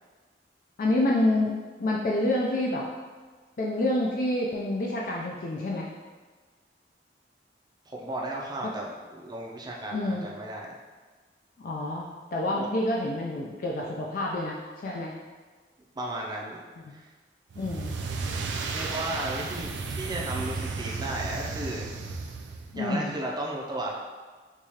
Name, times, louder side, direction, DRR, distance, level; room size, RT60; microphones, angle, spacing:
voice 1, 0.8-1.5 1.8-2.9 3.6-5.9 8.6-8.7 9.9-10.3 11.6-15.2 16.8-16.9 17.6-18.0 22.7-23.1, left 1 dB, 50° left, -2 dB, 0.3 m, -28 dB
voice 2, 7.9-10.7 12.6-12.7 15.9-16.6 16.9-17.1 18.6-21.9 22.8-24.0, right 1 dB, 25° right, -2 dB, 0.5 m, -34 dB
sound 1, 17.5-22.8, right 4 dB, 90° right, 0.3 m, -34 dB
4.6 x 2.4 x 2.8 m, 1.4 s
head